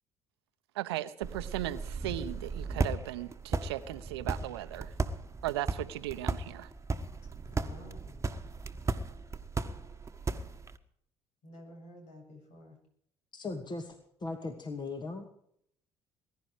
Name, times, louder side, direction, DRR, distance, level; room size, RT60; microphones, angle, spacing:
voice 1, 0.7-4.9 5.4-6.7, right 14 dB, 80° right, 14 dB, 0.8 m, -37 dB
sound 1, 1.2-10.8, right 3 dB, 20° right, 1.5 m, -36 dB
voice 2, 7.5-8.2 11.4-12.8, left 1 dB, 60° left, 3 dB, 7.7 m, -51 dB
voice 3, 13.3-15.3, left 3 dB, 35° left, 5 dB, 2.5 m, -38 dB
21.5 x 11.5 x 5.0 m, 0.67 s
hypercardioid pair, 55°, 13 cm